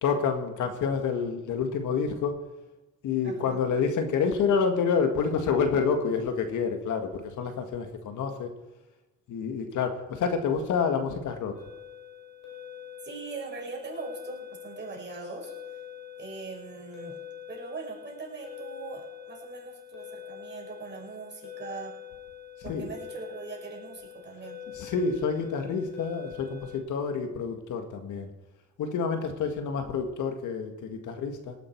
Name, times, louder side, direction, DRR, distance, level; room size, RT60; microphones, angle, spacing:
voice 1, 0.0-2.3 3.0-8.5 9.3-11.6 22.7-22.9 24.7-28.3 28.8-31.5, left 5 dB, 80° left, 6 dB, 2.0 m, -28 dB
voice 2, 3.2-3.6 13.0-15.5 16.2-17.2 17.5-21.9 22.6-24.6, right 4 dB, 35° right, -2 dB, 5.7 m, -41 dB
sound 1, 11.5-26.8, left 9 dB, 60° left, 4.6 m, -45 dB
18.5 x 10.5 x 4.7 m, 1.1 s
cardioid pair, 90°, 30 cm